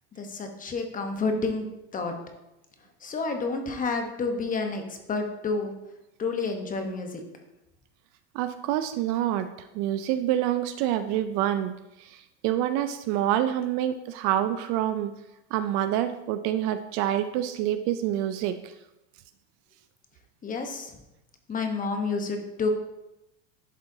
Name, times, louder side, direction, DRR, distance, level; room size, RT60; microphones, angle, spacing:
voice 1, 0.2-1.6 1.9-2.1 3.0-5.7 6.2-7.2 20.4-20.9 21.5-22.7, left 4 dB, 20° left, 5 dB, 0.9 m, -29 dB
voice 2, 8.3-15.1 15.5-18.7, right 12 dB, 50° right, 10 dB, 0.5 m, -27 dB
10.5 x 3.9 x 2.7 m, 0.92 s
supercardioid pair, 120°, 38 cm